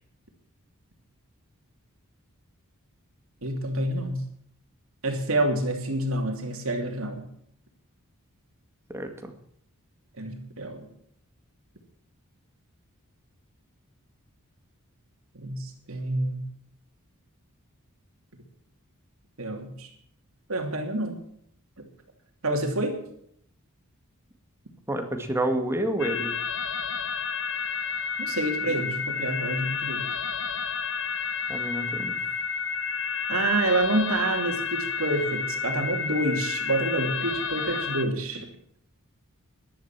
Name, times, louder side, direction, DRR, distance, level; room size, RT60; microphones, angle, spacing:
voice 1, 3.4-4.2 5.0-7.2 10.2-10.9 15.3-16.4 19.4-19.9 20.5-21.2 21.8-21.9 22.4-23.0 28.2-30.0 33.3-38.5, right 2 dB, 65° right, 3 dB, 2.9 m, -28 dB
voice 2, 8.9-9.3 24.9-26.3 28.6-28.8 31.5-32.1, right 1 dB, 10° right, 5 dB, 2.1 m, -29 dB
sound 1, 26.0-38.0, left 5 dB, 55° left, 1.4 m, -30 dB
14.5 x 11.5 x 6.1 m, 0.67 s
head